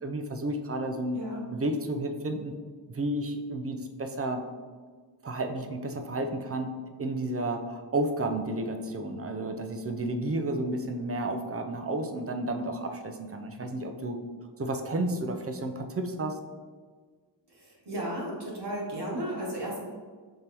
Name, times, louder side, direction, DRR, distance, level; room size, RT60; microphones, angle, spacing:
voice 1, 0.0-1.2 1.5-2.5 2.9-4.4 5.2-6.7 7.0-14.2 14.6-16.4, right 1 dB, 35° right, 5 dB, 0.4 m, -31 dB
voice 2, 17.9-19.8, right 1 dB, 60° right, -5 dB, 1.2 m, -34 dB
5.2 x 3.3 x 2.9 m, 1.5 s
wide cardioid pair, 75°, 46 cm